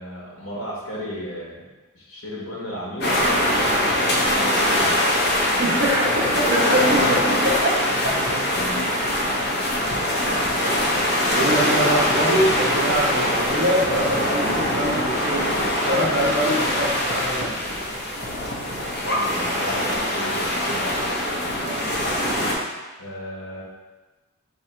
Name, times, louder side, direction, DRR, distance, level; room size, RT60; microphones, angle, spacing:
voice 1, 0.0-1.7 1.9-3.1 3.5-5.0 7.9-8.9 9.7-9.9 10.7-10.9 19.0-20.9 23.0-23.6, equal, 65° left, -5 dB, 1.4 m, -35 dB
sound 1, 3.0-22.5, left 1 dB, 45° left, 0.7 m, -22 dB
voice 2, 5.6-8.0 9.7-9.9 11.3-15.5 15.9-17.6 21.6-21.9, right 1 dB, 50° right, -4 dB, 1.0 m, -24 dB
3.8 x 2.8 x 4.5 m, 1.2 s
head